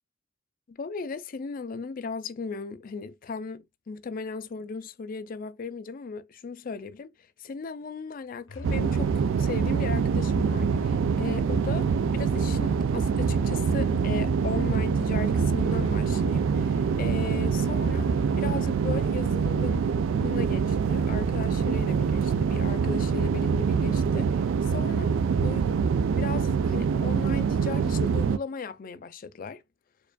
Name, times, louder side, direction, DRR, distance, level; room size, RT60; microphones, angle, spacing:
voice 1, 0.7-18.1 18.4-19.9 20.2-25.7 26.1-29.6, left 4 dB, 45° left, 0.4 m, -37 dB
Musical instrument, 8.5-18.9, left 3 dB, 80° left, 0.8 m, -39 dB
sound 1, 8.6-28.4, right 6 dB, 70° right, 0.3 m, -25 dB
4.6 x 2.5 x 2.2 m
head